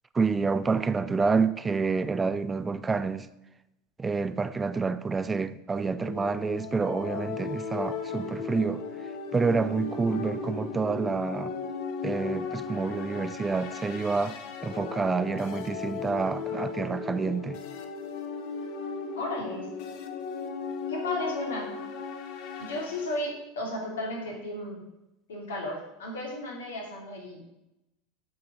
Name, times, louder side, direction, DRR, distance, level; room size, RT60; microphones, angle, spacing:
voice 1, 0.1-3.3 4.0-8.8 9.3-11.5 12.0-17.6, right 4 dB, 20° right, 0.5 m, -28 dB
sound 1, 5.9-23.2, left 5 dB, 50° left, 1.1 m, -36 dB
voice 2, 19.2-19.7 20.9-21.7 22.6-24.8 25.3-27.4, left 1 dB, 70° left, 2.9 m, -34 dB
8.7 x 5.7 x 6.5 m
figure-of-eight pair, 80°, 0 cm